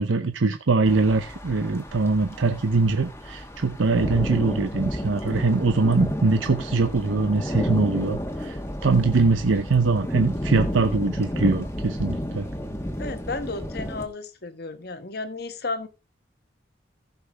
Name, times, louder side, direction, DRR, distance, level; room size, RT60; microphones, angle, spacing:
voice 1, 0.0-12.5, right 3 dB, 90° right, 0.7 m, -22 dB
sound 1, 0.9-14.1, equal, 15° left, 1.3 m, -31 dB
voice 2, 13.0-15.9, left 3 dB, 55° left, 1.2 m, -33 dB
15.0 x 5.8 x 3.5 m
head